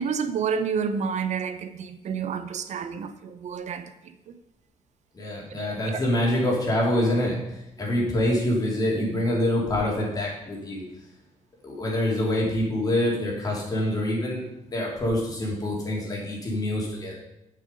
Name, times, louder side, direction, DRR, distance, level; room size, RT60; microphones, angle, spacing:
voice 1, 0.0-4.4 5.6-6.1, right 6 dB, 60° right, 10 dB, 0.6 m, -30 dB
voice 2, 5.1-10.8 11.6-14.4 14.7-17.2, left 1 dB, 30° left, -3 dB, 3.0 m, -26 dB
9.9 x 6.7 x 5.3 m, 0.89 s
wide cardioid pair, 155°, 13 cm